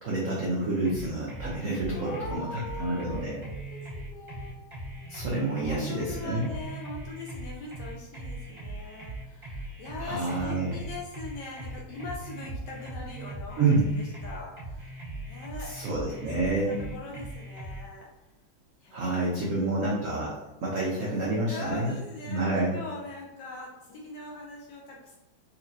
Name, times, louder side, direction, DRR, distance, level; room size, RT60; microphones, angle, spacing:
voice 1, 0.0-3.4 5.1-6.5 10.0-10.7 13.6-13.9 15.6-16.9 18.9-21.9 22.3-22.8, right 2 dB, 75° right, -4 dB, 0.7 m, -28 dB
sound 1, 0.8-17.8, right 2 dB, 20° right, 0.8 m, -40 dB
voice 2, 1.9-5.2 5.6-16.2 16.6-18.1 18.8-19.0 19.3-19.5 20.1-20.3 21.5-25.2, left 3 dB, 70° left, -2 dB, 1.0 m, -42 dB
4.1 x 2.9 x 2.7 m, 1.1 s
omnidirectional pair, 2.3 m